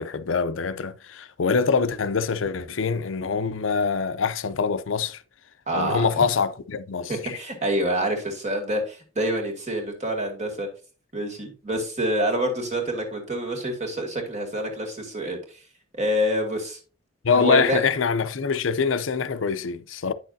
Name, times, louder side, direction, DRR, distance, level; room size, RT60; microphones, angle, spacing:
voice 1, 0.0-5.2 5.7-7.4 17.2-20.1, left 5 dB, 90° left, 0.6 m, -24 dB
voice 2, 5.7-6.2 7.1-10.7 11.1-15.4 15.9-16.8 17.3-17.8, right 1 dB, 40° right, 2.1 m, -27 dB
9.2 x 6.3 x 2.7 m
head